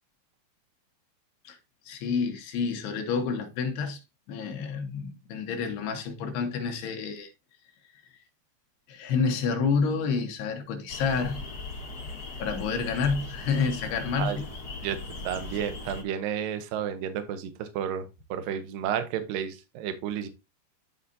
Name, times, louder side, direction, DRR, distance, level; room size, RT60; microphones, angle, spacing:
voice 1, 1.9-4.0 4.3-7.3 8.9-11.5 12.4-14.3, left 5 dB, 85° left, 3.6 m, -29 dB
sound 1, 10.9-16.0, left 3 dB, 45° left, 1.2 m, -38 dB
voice 2, 14.8-20.3, right 9 dB, 70° right, 2.6 m, -32 dB
12.5 x 5.0 x 2.7 m
omnidirectional pair, 4.6 m